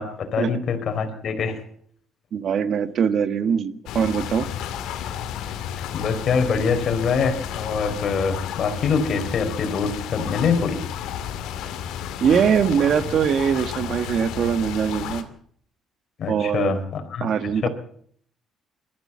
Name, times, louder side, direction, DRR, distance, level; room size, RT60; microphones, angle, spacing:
voice 1, 0.0-1.6 5.9-10.8 16.2-17.3 17.6-17.7, left 5 dB, 50° left, 6 dB, 4.1 m, -24 dB
voice 2, 2.3-4.5 12.2-15.3 16.3-16.8 17.2-17.7, right 7 dB, 55° right, 13 dB, 1.5 m, -22 dB
sound 1, 3.9-15.2, left 9 dB, 80° left, 2.2 m, -32 dB
22.0 x 14.0 x 8.5 m, 0.63 s
cardioid pair, 105°, 0 cm